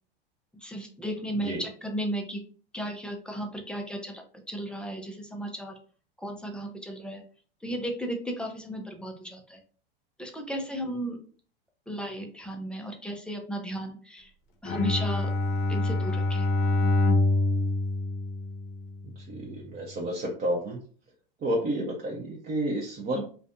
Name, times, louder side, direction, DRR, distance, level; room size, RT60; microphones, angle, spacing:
voice 1, 0.6-2.4 2.7-5.7 6.2-7.2 7.6-9.6 10.2-11.2 11.9-14.3 14.6-15.3 15.7-16.5 23.1-23.2, right 1 dB, 5° left, 3 dB, 0.4 m, -35 dB
Bowed string instrument, 14.6-19.0, left 2 dB, 45° left, 0.7 m, -26 dB
voice 2, 19.3-20.8 21.4-23.2, right 1 dB, 30° right, -3 dB, 0.7 m, -30 dB
2.5 x 2.2 x 2.5 m, 0.42 s
hypercardioid pair, 100°, 29 cm